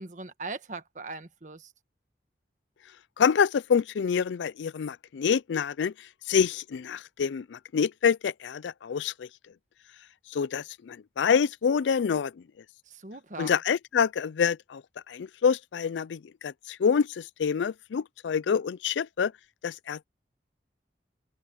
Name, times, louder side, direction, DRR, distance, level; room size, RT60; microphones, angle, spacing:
voice 1, 0.0-1.7 12.9-13.6, right 3 dB, 45° right, 1.4 m, -40 dB
voice 2, 3.2-5.9 6.3-9.3 10.3-12.3 13.4-14.8 15.1-19.3 19.6-20.0, left 6 dB, 90° left, 0.4 m, -27 dB
head